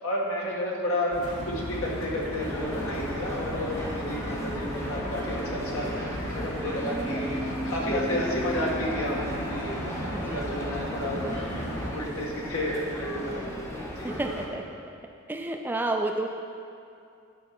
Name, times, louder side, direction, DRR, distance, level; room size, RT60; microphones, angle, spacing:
voice 1, 0.0-1.2 1.5-11.3 11.8-14.1, left 1 dB, 70° left, -4 dB, 1.8 m, -32 dB
sound 1, 1.1-11.9, equal, 85° left, 1.7 m, -35 dB
sound 2, 2.4-14.5, equal, 10° left, 1.1 m, -36 dB
voice 2, 10.1-10.6 14.0-14.7 15.3-16.3, right 2 dB, 10° right, 3 dB, 0.3 m, -30 dB
11.5 x 4.5 x 5.9 m, 2.5 s
head